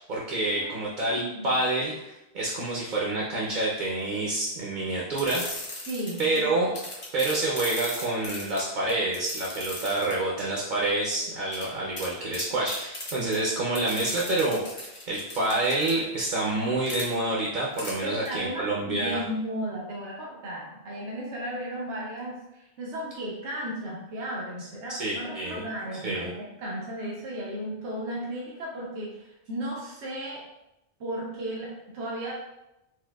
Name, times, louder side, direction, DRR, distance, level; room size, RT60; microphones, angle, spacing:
voice 1, 0.1-5.8 6.2-6.7 7.1-19.2 24.9-25.6 26.0-26.3, right 2 dB, 55° right, -4 dB, 0.6 m, -28 dB
voice 2, 1.1-1.5 5.9-6.3 18.0-30.4 31.0-32.3, right 1 dB, 90° right, -4 dB, 0.9 m, -35 dB
sound 1, 5.1-6.4 6.7-10.4 11.5-11.7 12.0-12.1 12.3-13.4 13.7-15.9 16.9-17.1 17.8-18.0 18.2-18.3, left 1 dB, 30° left, 0.8 m, -37 dB
4.5 x 2.1 x 2.2 m, 0.90 s
omnidirectional pair, 1.1 m